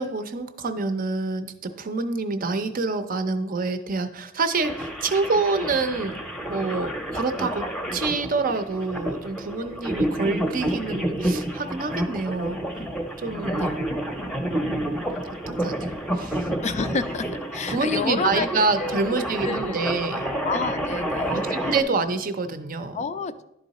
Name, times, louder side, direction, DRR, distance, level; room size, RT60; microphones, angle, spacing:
voice 1, 0.0-7.6 7.9-12.9 13.2-13.7 14.3-15.0 15.3-16.5 17.7-20.3 21.3-23.0, right 3 dB, 45° right, 10 dB, 0.6 m, -27 dB
sound 1, 4.5-21.8, right 1 dB, 5° left, 0.7 m, -29 dB
voice 2, 16.6-18.5 18.8-19.8 20.4-21.5 22.9-23.4, left 4 dB, 35° left, 11 dB, 0.4 m, -29 dB
11.0 x 3.8 x 4.1 m, 0.83 s
head